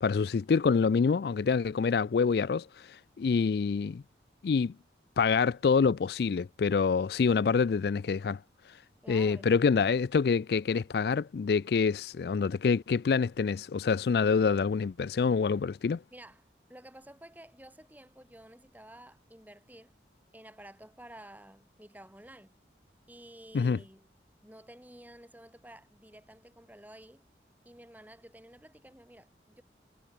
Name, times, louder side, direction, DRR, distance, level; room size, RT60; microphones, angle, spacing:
voice 1, 0.0-4.0 4.4-4.7 5.2-8.4 9.1-16.0 23.5-23.8, left 5 dB, 65° left, 0.4 m, -26 dB
voice 2, 9.0-9.5 16.1-19.9 20.3-22.6 23.1-24.1 24.4-27.3 27.6-29.6, right 1 dB, 10° right, 4.2 m, -52 dB
head